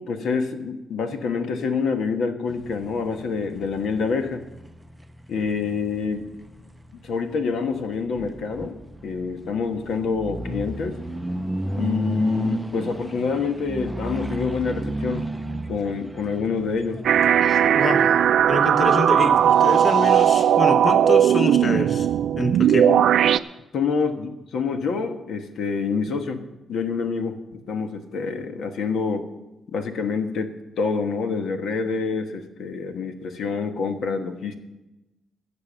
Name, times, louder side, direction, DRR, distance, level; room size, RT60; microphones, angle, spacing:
voice 1, 0.0-4.4 5.3-6.3 6.9-8.7 9.0-11.0 11.8-15.3 15.7-17.0 22.8-23.1 23.7-26.4 26.7-27.4 27.7-29.3 29.7-34.5, left 5 dB, 80° left, 6 dB, 1.3 m, -27 dB
sound 1, 2.5-19.7, right 1 dB, 5° right, 0.5 m, -34 dB
sound 2, 17.0-23.4, right 9 dB, 80° right, 0.4 m, -18 dB
voice 2, 17.4-18.1 18.5-22.1 22.4-22.9, left 2 dB, 35° left, 8 dB, 0.9 m, -26 dB
sound 3, 19.3-20.4, left 2 dB, 60° left, 4.7 m, -46 dB
15.5 x 6.8 x 6.9 m, 1.0 s
wide cardioid pair, 145°, 0 cm